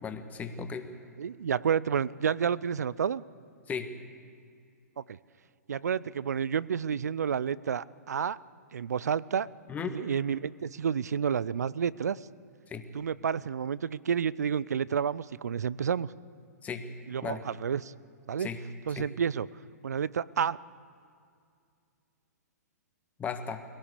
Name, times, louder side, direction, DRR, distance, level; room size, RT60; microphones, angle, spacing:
voice 1, 0.0-0.9 3.7-3.9 9.7-9.9 12.7-12.9 16.6-16.9 17.2-17.4 18.4-18.6 18.9-19.1 23.2-23.6, left 6 dB, 15° left, 8 dB, 1.5 m, -36 dB
voice 2, 1.2-3.2 5.7-8.4 8.7-9.5 9.8-12.2 12.9-16.1 17.1-17.9 18.3-18.5 18.9-19.5 19.8-20.6, right 7 dB, 70° right, 20 dB, 0.5 m, -30 dB
22.0 x 17.5 x 8.3 m, 2.3 s
figure-of-eight pair, 115°, 9 cm